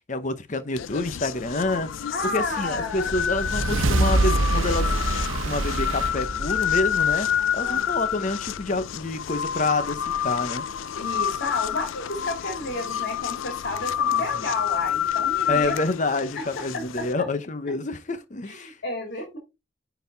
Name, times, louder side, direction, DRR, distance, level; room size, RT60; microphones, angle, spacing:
voice 1, 0.1-1.9 2.3-4.9 5.3-7.3 7.5-10.7 15.5-18.8, left 2 dB, 40° left, 0.8 m, -27 dB
sound 1, 0.8-17.1, left 9 dB, 80° left, 0.4 m, -28 dB
voice 2, 2.1-3.1 7.4-7.8 11.0-15.7 16.7-16.8 17.2-17.3 18.5-19.4, left 2 dB, 55° left, 2.3 m, -31 dB
sound 2, 3.0-7.6, right 2 dB, 85° right, 0.9 m, -25 dB
9.8 x 4.1 x 4.0 m
head